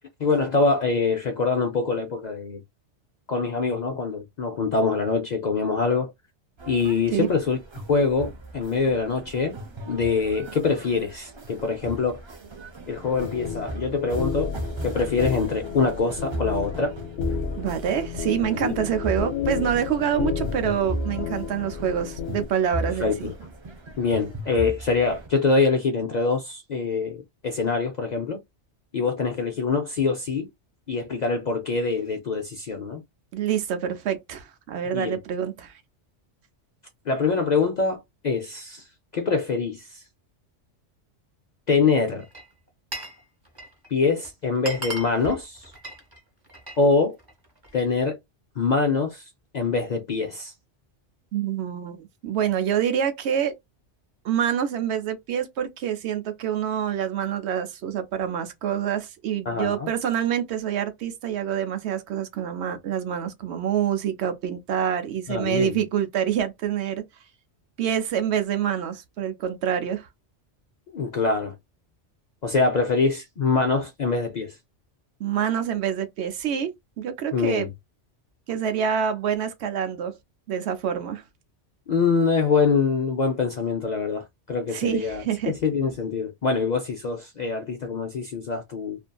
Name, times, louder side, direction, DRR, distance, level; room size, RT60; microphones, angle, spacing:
voice 1, 0.2-2.6 3.3-6.1 6.7-7.6 7.9-9.5 9.9-12.2 12.9-14.5 14.8-16.9 18.5-18.8 23.0-23.3 24.0-28.4 28.9-30.5 30.9-33.0 34.9-35.2 37.1-38.9 39.1-40.0 41.7-42.2 43.9-45.7 46.8-47.2 47.7-48.2 48.6-49.2 49.5-50.5 59.5-59.9 65.3-65.8 70.9-71.5 72.4-74.6 77.3-77.7 81.9-89.0, left 4 dB, 60° left, 0.4 m, -24 dB
sound 1, 6.6-25.3, right 2 dB, 45° right, 0.4 m, -37 dB
sound 2, 13.0-22.5, left 8 dB, 75° left, 0.8 m, -32 dB
voice 2, 17.6-23.3 33.3-35.8 51.3-53.6 54.2-67.0 67.8-70.1 75.2-76.7 77.0-77.7 78.5-80.1 80.5-81.2 84.7-85.5, right 9 dB, 70° right, 0.8 m, -26 dB
Glass, 42.2-43.2 43.5-43.9 44.2-44.3 44.6-46.8 47.2-47.9, right 2 dB, 20° right, 0.8 m, -37 dB
2.6 x 2.5 x 2.2 m
omnidirectional pair, 1.2 m